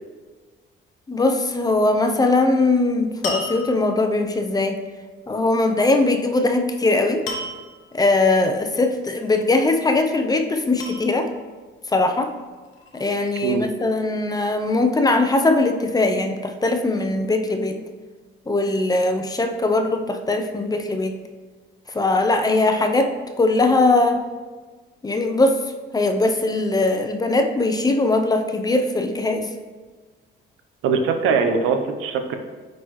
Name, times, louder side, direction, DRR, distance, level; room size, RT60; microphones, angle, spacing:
voice 1, 1.1-4.8 5.3-7.2 7.9-11.3 11.9-12.3 12.9-17.8 18.5-21.1 21.9-23.1 23.4-24.2 25.0-25.6 25.9-29.5, left 2 dB, 20° left, 6 dB, 0.5 m, -20 dB
sound 1, 3.2-4.1 7.3-7.9 9.2-9.7 10.8-11.6 12.5-13.4, left 2 dB, 90° left, 1.1 m, -34 dB
voice 2, 30.8-32.4, right 5 dB, 85° right, 6 dB, 0.7 m, -21 dB
9.1 x 4.0 x 3.1 m, 1.4 s
cardioid pair, 110°, 21 cm